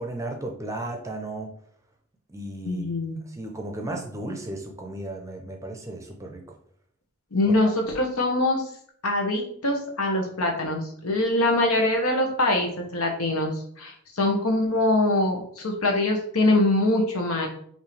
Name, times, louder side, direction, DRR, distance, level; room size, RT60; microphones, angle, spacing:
voice 1, 0.0-1.6 2.3-2.8 3.3-6.4 7.4-7.5, right 1 dB, 15° right, 2 dB, 0.5 m, -34 dB
voice 2, 2.6-3.2 7.3-8.6 9.0-17.5, left 2 dB, 90° left, 2 dB, 1.1 m, -23 dB
5.4 x 2.7 x 3.2 m, 0.62 s
head